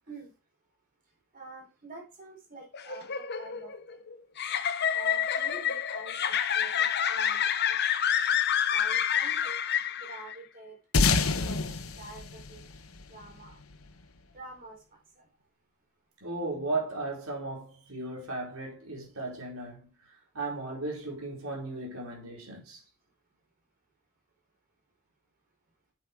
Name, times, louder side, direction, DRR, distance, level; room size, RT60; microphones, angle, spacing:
voice 1, 1.3-4.0 4.9-7.4 7.7-7.8 8.7-9.6 10.0-12.6 13.1-13.6 14.3-14.8, right 2 dB, 45° right, 4.7 m, -47 dB
sound 1, 2.7-10.3, left 9 dB, 50° left, 0.9 m, -28 dB
sound 2, 10.9-13.7, left 4 dB, 80° left, 1.1 m, -27 dB
voice 2, 16.2-19.9 20.3-22.8, right 2 dB, 80° right, 5.0 m, -36 dB
8.5 x 8.4 x 4.8 m
head